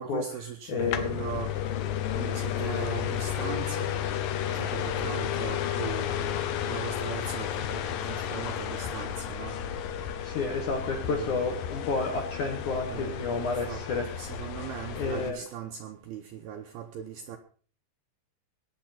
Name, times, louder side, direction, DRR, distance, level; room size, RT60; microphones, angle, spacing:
voice 1, 0.0-1.6 2.1-3.9 4.5-9.6 11.0-11.4 12.8-13.8 14.1-17.4, right 9 dB, 85° right, 5 dB, 2.2 m, -39 dB
voice 2, 0.7-1.1 10.2-14.0 15.0-15.4, left 4 dB, 60° left, 3 dB, 2.1 m, -30 dB
sound 1, 0.8-15.3, left 10 dB, 85° left, 1.9 m, -32 dB
21.0 x 9.0 x 4.3 m, 0.42 s
omnidirectional pair, 5.5 m